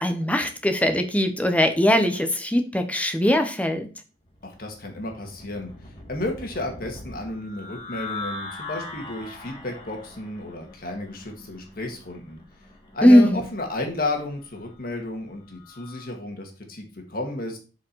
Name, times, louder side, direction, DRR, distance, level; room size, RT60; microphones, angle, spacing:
voice 1, 0.0-3.9 13.0-13.5, equal, 10° left, 7 dB, 0.8 m, -20 dB
sound 1, 4.3-16.1, left 2 dB, 30° left, 1.5 m, -41 dB
voice 2, 4.4-5.7 6.1-12.4 12.9-17.6, left 2 dB, 50° left, 2 dB, 1.9 m, -32 dB
7.0 x 5.1 x 4.6 m, 0.35 s
head